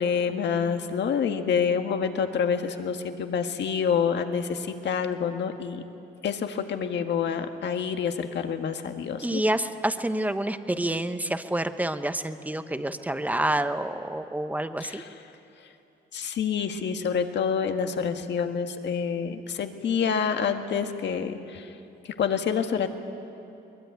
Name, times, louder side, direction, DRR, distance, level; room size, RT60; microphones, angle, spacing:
voice 1, 0.0-5.8 6.2-9.4 14.8-15.1 16.1-21.7 22.1-22.9, left 7 dB, 60° left, 6 dB, 1.7 m, -27 dB
voice 2, 9.2-15.0, right 1 dB, 10° right, 9 dB, 1.1 m, -28 dB
22.5 x 21.0 x 9.4 m, 2.8 s
cardioid pair, 90°, 20 cm